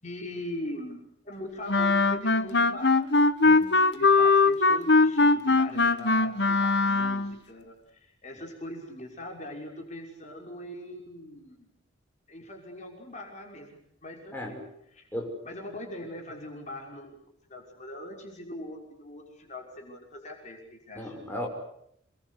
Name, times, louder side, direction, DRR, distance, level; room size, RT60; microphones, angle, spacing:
voice 1, 0.0-3.0 3.9-11.7 12.3-14.7 14.9-15.1 15.4-17.2 17.5-21.1, left 1 dB, 40° left, 1 dB, 5.9 m, -41 dB
Wind instrument woodwind instrument, 1.7-7.4, left 3 dB, 60° left, 1.5 m, -21 dB
voice 2, 20.9-21.5, equal, 10° left, 0 dB, 6.4 m, -35 dB
28.5 x 22.5 x 8.4 m, 0.75 s
head